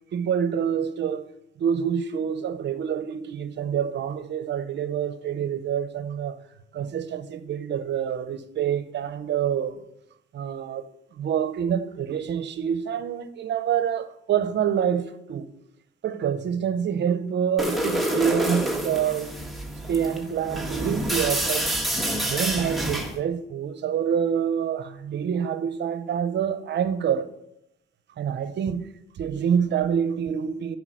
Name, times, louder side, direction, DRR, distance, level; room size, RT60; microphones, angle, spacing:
voice 1, 0.1-1.3 1.6-6.4 6.7-9.8 10.3-15.5 16.0-19.4 19.9-21.7 22.2-27.3 28.2-28.9 29.2-30.8, right 8 dB, 60° right, 0.8 m, -27 dB
sound 1, 17.6-23.2, right 1 dB, ahead, 1.4 m, -27 dB
11.0 x 4.8 x 6.2 m
cardioid pair, 90°, 20 cm